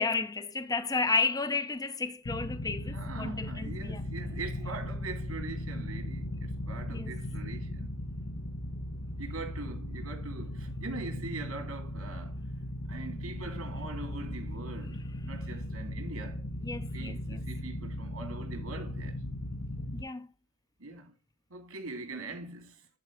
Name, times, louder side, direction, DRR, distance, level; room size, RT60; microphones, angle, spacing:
voice 1, 0.0-4.1 6.9-7.1 16.6-17.4 19.9-20.3, left 4 dB, 15° left, 0.6 m, -32 dB
sound 1, 2.2-20.0, left 1 dB, 75° left, 1.1 m, -37 dB
voice 2, 2.9-7.9 9.2-12.5 12.9-16.4 16.9-19.2 20.8-21.1 21.5-22.9, right 3 dB, 80° right, 2.8 m, -42 dB
10.5 x 4.5 x 4.6 m
head